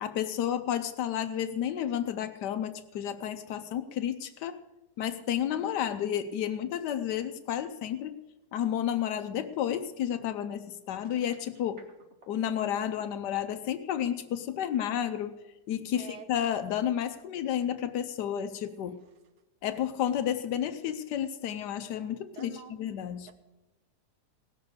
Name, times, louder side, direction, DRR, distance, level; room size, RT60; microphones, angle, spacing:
voice 1, 0.0-4.6 5.0-8.2 8.5-11.8 12.3-15.4 15.7-19.0 19.6-23.3, left 10 dB, 85° left, 9 dB, 1.3 m, -31 dB
sound 1, 10.9-13.1, right 2 dB, 45° right, 1.6 m, -55 dB
voice 2, 15.9-16.3 18.7-18.8 22.3-22.9, right 8 dB, 80° right, 9 dB, 1.6 m, -46 dB
17.5 x 6.8 x 8.0 m, 1.1 s
omnidirectional pair, 1.8 m